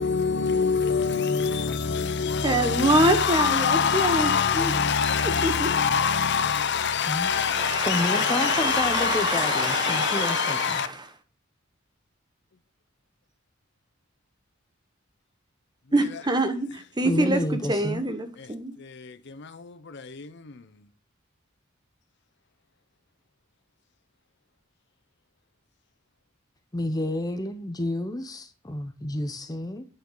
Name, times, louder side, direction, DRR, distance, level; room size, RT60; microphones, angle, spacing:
voice 1, 0.0-10.9 18.4-18.5 18.8-20.6, left 6 dB, 60° left, 0.8 m, -25 dB
voice 2, 2.4-4.7 5.4-5.7 7.0-11.1 15.9-18.7, right 1 dB, 20° right, 1.3 m, -26 dB
voice 3, 7.0-7.3 7.8-10.8 17.0-18.0 26.7-29.8, left 1 dB, 20° left, 0.8 m, -30 dB
10.0 x 8.8 x 3.9 m
head